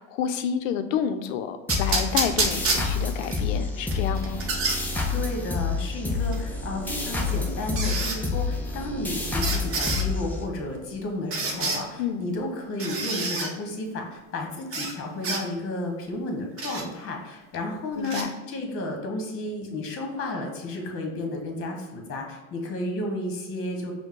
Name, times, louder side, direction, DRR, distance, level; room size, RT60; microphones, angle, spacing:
voice 1, 0.0-4.4 12.0-12.2 18.0-18.3, left 8 dB, 70° left, 9 dB, 0.6 m, -29 dB
sound 1, 1.7-10.9, left 4 dB, 5° left, 0.3 m, -29 dB
sound 2, 1.7-3.4 3.9-4.8 6.3-6.4 7.7-8.2 9.4-10.0 11.3-11.8 12.8-13.5 14.7-14.9 15.2-15.4 16.6-16.8 18.0-18.2, right 3 dB, 35° right, 0.9 m, -27 dB
voice 2, 5.1-23.9, left 1 dB, 35° left, 2 dB, 1.1 m, -32 dB
5.3 x 2.2 x 3.7 m, 1.2 s
supercardioid pair, 115°, 40 cm